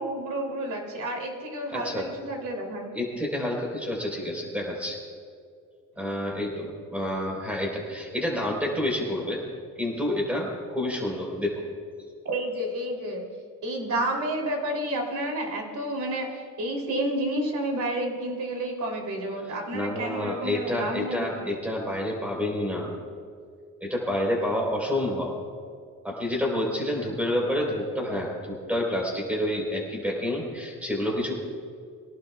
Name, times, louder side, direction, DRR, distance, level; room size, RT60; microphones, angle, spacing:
voice 1, 0.0-2.9 12.2-13.2 13.6-21.3, right 1 dB, 60° right, 1 dB, 3.1 m, -30 dB
voice 2, 1.7-2.0 2.9-5.0 6.0-9.4 9.8-11.6 19.7-22.9 23.8-25.3 26.0-31.4, left 1 dB, 5° right, -2 dB, 3.8 m, -28 dB
24.0 x 18.0 x 2.4 m, 2.2 s
cardioid pair, 180°, 33 cm